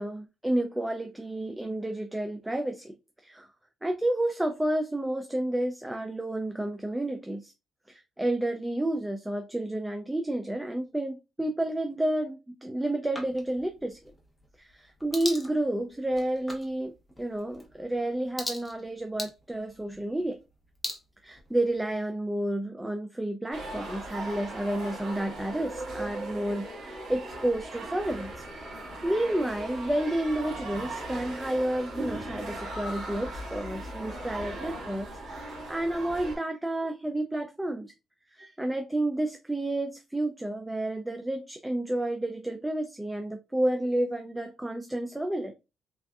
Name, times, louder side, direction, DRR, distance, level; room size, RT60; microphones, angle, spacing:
voice 1, 0.0-2.9 3.2-3.5 3.8-7.5 7.9-14.0 14.6-16.9 17.2-20.4 21.2-28.4 29.0-37.9 38.3-45.5, right 1 dB, 10° right, 0.4 m, -30 dB
sound 1, 13.1-21.9, left 1 dB, 10° left, 0.9 m, -42 dB
sound 2, 23.5-36.4, right 1 dB, 70° right, 1.6 m, -38 dB
3.4 x 2.5 x 2.3 m
cardioid pair, 90°, 0 cm